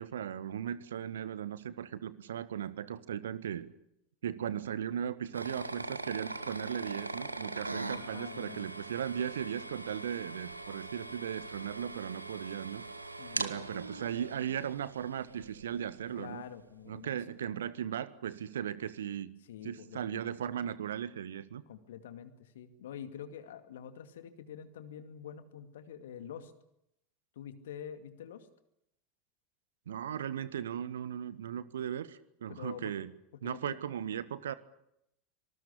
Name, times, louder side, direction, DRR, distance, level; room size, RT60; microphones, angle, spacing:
voice 1, 0.0-3.7 4.2-12.8 13.4-16.4 16.9-19.3 19.6-21.6 29.9-33.1 33.4-34.5, right 9 dB, 70° right, 16 dB, 1.4 m, -37 dB
sound 1, 5.3-16.1, right 2 dB, 85° right, 1.5 m, -41 dB
voice 2, 7.9-8.7 13.2-13.7 16.2-17.2 19.5-20.3 21.7-26.5 27.4-28.5 32.5-32.9 33.3-33.8, left 8 dB, 65° left, 10 dB, 2.3 m, -46 dB
25.5 x 20.0 x 8.6 m, 0.80 s
figure-of-eight pair, 80°, 0 cm